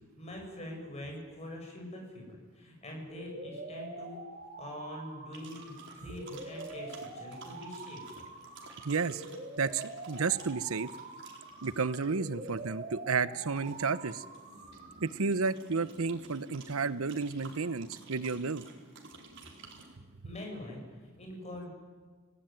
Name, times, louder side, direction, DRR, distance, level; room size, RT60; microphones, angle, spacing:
voice 1, 0.2-4.2 4.6-8.1 20.2-21.7, left 1 dB, 30° left, 1 dB, 7.8 m, -44 dB
sound 1, 3.1-15.1, right 2 dB, 35° right, 3.9 m, -45 dB
sound 2, 5.3-20.0, right 3 dB, 60° right, 4.5 m, -53 dB
voice 2, 8.8-9.3 9.6-10.9 11.6-14.2 15.0-18.6, right 4 dB, 85° right, 16 dB, 0.9 m, -32 dB
29.5 x 18.0 x 9.4 m, 1.5 s
head